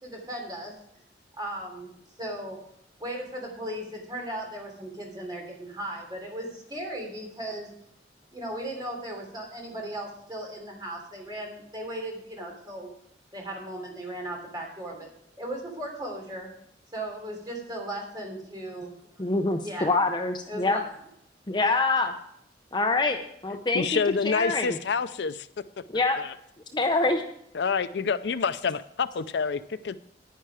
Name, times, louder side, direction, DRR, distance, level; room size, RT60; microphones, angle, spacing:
voice 1, 0.0-0.8 1.4-1.9 2.2-2.6 3.0-7.7 8.3-12.9 13.3-15.1 15.4-16.5 16.9-18.9 19.6-19.9 20.4-20.9, right 1 dB, 20° right, 0 dB, 3.3 m, -36 dB
voice 2, 19.2-20.8 21.5-22.1 22.7-23.2 23.4-24.8 25.9-26.2 26.7-27.2, left 3 dB, 25° left, 5 dB, 0.6 m, -25 dB
voice 3, 23.7-25.5 26.2-26.3 27.5-28.8 29.3-29.6 29.9-30.0, left 5 dB, 70° left, 14 dB, 0.4 m, -27 dB
10.5 x 10.0 x 4.9 m, 0.72 s
head